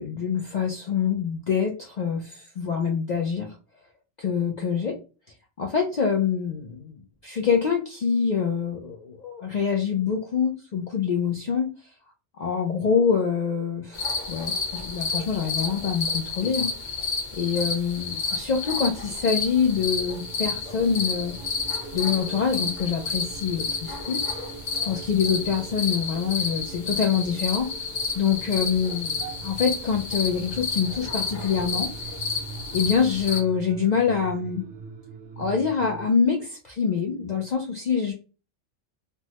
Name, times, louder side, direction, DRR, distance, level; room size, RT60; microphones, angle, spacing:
voice 1, 0.0-3.5 4.2-5.0 5.6-6.9 7.2-11.7 12.4-16.9 17.3-21.4 21.9-24.4 24.8-27.7 28.2-31.9 32.7-34.6 35.4-38.1, left 6 dB, 65° left, 0 dB, 0.4 m, -25 dB
sound 1, 13.9-33.4, left 4 dB, 45° left, 0.9 m, -31 dB
sound 2, 19.6-36.1, right 5 dB, 55° right, 0.7 m, -43 dB
3.3 x 2.1 x 2.8 m, 0.33 s
omnidirectional pair, 1.3 m